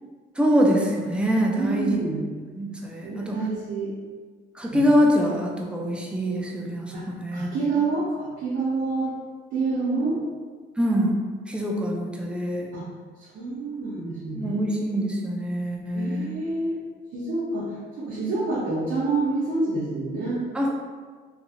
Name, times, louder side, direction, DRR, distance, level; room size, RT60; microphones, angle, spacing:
voice 1, 0.4-2.1 2.5-3.4 4.5-6.9 7.2-7.5 10.8-11.1 11.5-12.7 14.3-16.3 20.5-20.7, equal, 5° right, -1 dB, 0.5 m, -24 dB
voice 2, 1.5-2.2 3.0-3.9 4.7-4.8 6.9-9.1 9.5-10.2 12.7-12.9 13.2-14.6 15.9-16.8 17.1-17.7 18.0-20.4, right 3 dB, 80° right, -10 dB, 0.8 m, -27 dB
2.8 x 2.4 x 2.7 m, 1.5 s
cardioid pair, 90°, 20 cm